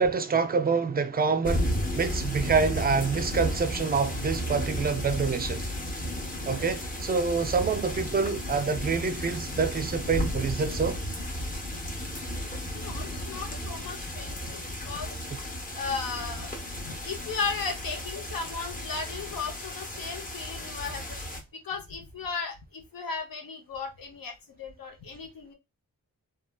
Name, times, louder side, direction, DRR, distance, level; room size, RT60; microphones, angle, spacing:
voice 1, 0.0-5.6 6.5-11.0, right 5 dB, 30° right, 0.4 m, -27 dB
sound 1, 1.4-21.4, equal, 25° left, 0.7 m, -34 dB
voice 2, 12.7-15.1 15.7-16.5 16.8-21.4 21.6-25.5, left 5 dB, 85° left, 0.8 m, -36 dB
3.1 x 2.2 x 2.2 m
wide cardioid pair, 90°, 34 cm